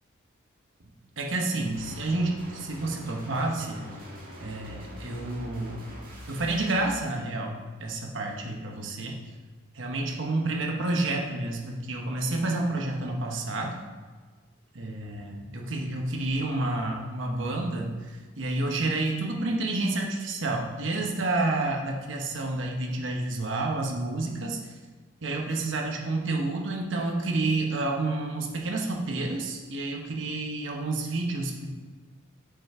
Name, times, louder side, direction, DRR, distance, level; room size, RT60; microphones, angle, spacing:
voice 1, 1.2-3.9 4.4-5.8 6.3-9.2 9.7-13.8 14.7-18.1 18.4-24.6 25.2-31.7, right 2 dB, 70° right, 0 dB, 1.1 m, -29 dB
sound 1, 1.7-6.9, equal, 45° right, 1.8 m, -43 dB
7.2 x 5.9 x 4.3 m, 1.4 s
head